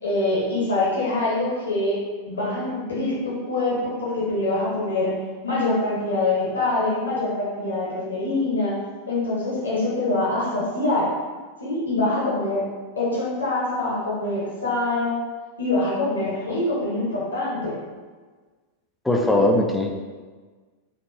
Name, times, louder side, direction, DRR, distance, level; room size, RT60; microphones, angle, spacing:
voice 1, 0.0-2.0 2.3-5.1 5.4-8.8 9.1-11.1 11.6-12.6 13.0-15.2 15.6-17.8, left 2 dB, 75° left, -7 dB, 1.1 m, -24 dB
voice 2, 19.0-19.9, left 1 dB, 5° left, 1 dB, 0.5 m, -19 dB
4.4 x 2.6 x 2.6 m, 1.4 s
figure-of-eight pair, 90°, 0 cm